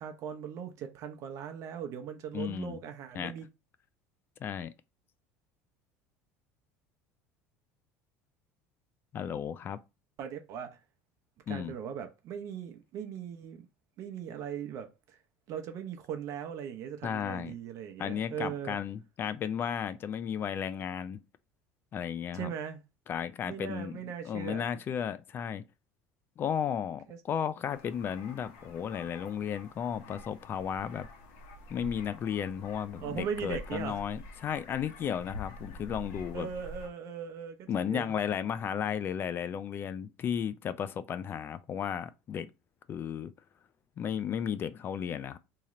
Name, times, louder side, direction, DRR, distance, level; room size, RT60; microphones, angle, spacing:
voice 1, 0.0-3.5 10.2-10.8 11.5-13.7 14.0-15.2 15.5-18.8 22.3-22.8 23.5-24.6 27.1-27.2 32.9-34.0 36.3-38.1, right 8 dB, 55° right, 0.8 m, -39 dB
voice 2, 2.3-2.8 3.1-3.3 4.4-4.7 9.1-9.8 11.5-11.7 17.0-17.5 18.0-21.2 21.9-22.5 23.1-23.9 24.2-25.6 26.4-31.1 31.7-36.5 37.7-42.5 42.9-43.3 44.0-45.4, left 8 dB, 35° left, 0.3 m, -34 dB
sound 1, 27.7-36.9, left 2 dB, 80° left, 1.0 m, -47 dB
3.1 x 2.8 x 3.7 m
supercardioid pair, 115°, 6 cm